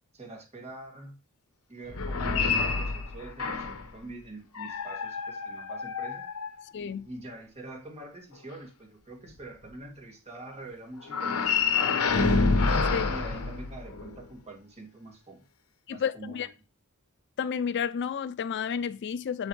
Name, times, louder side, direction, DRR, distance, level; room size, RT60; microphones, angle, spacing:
voice 1, 0.1-1.2 1.7-6.2 7.0-12.4 13.1-15.4 15.9-16.5, right 2 dB, 30° right, 2.4 m, -45 dB
sound 1, 1.9-3.9 4.5-7.0 11.1-14.2, left 4 dB, 75° left, 1.0 m, -28 dB
voice 2, 6.7-7.1 12.9-13.1 15.9-16.5 17.4-19.5, left 7 dB, 50° left, 0.4 m, -31 dB
7.6 x 7.3 x 3.3 m
head